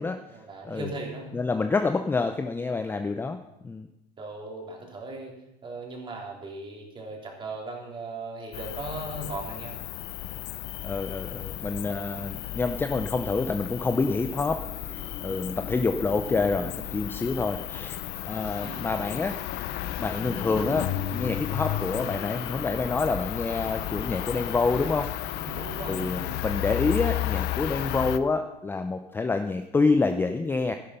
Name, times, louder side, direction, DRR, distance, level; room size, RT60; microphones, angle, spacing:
voice 1, 0.3-1.3 4.2-5.3 5.6-9.8 18.6-18.9 25.4-26.4, right 2 dB, 25° right, 0 dB, 3.3 m, -38 dB
voice 2, 1.3-3.9 10.8-19.4 20.0-25.1 25.9-30.8, left 3 dB, 10° left, 7 dB, 0.5 m, -27 dB
Cricket, 8.5-28.2, left 15 dB, 55° left, 0.7 m, -33 dB
sound 1, 14.3-25.6, left 4 dB, 90° left, 3.1 m, -44 dB
12.5 x 10.5 x 5.7 m, 0.89 s
supercardioid pair, 135°, 20 cm